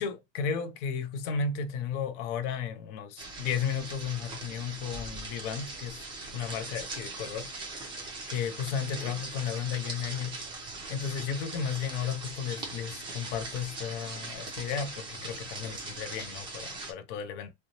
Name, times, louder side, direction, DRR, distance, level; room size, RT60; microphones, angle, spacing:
voice 1, 0.0-6.0 6.3-7.7 8.3-10.4 10.9-17.5, left 7 dB, 40° left, 0.5 m, -34 dB
sound 1, 3.2-16.9, right 3 dB, 15° right, 0.5 m, -41 dB
2.5 x 2.0 x 2.8 m
supercardioid pair, 140°, 34 cm